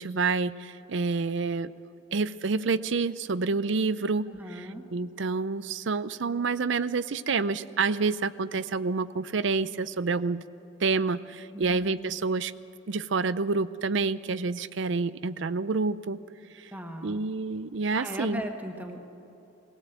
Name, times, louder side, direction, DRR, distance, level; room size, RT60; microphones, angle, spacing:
voice 1, 0.0-1.7 2.1-10.4 10.8-12.5 12.9-16.2 17.0-18.4, right 4 dB, 65° right, 16 dB, 0.5 m, -28 dB
voice 2, 4.3-4.8 11.5-12.2 16.7-17.2 17.9-19.0, equal, 10° right, 4 dB, 1.4 m, -38 dB
21.0 x 17.0 x 8.1 m, 3.0 s
head